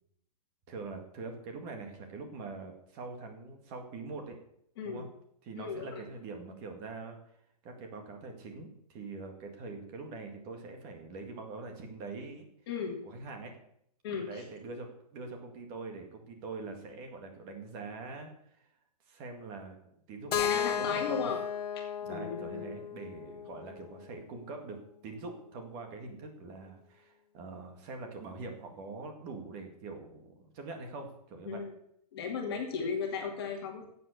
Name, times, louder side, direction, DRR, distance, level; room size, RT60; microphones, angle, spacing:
voice 1, 0.7-4.4 4.8-5.1 5.4-7.2 7.6-12.5 13.1-13.6 14.3-18.3 19.1-21.3 22.0-24.8 25.0-31.6, right 3 dB, 25° right, 4 dB, 1.9 m, -43 dB
voice 2, 4.8-5.1 5.6-6.0 12.7-13.0 14.0-14.4 20.4-21.4 22.1-22.7 31.5-31.7 32.1-33.8, left 5 dB, 40° left, 2 dB, 2.4 m, -35 dB
Keyboard (musical), 20.3-24.2, left 9 dB, 75° left, 0.7 m, -34 dB
12.5 x 7.8 x 6.8 m, 0.72 s
hypercardioid pair, 170°, 20 cm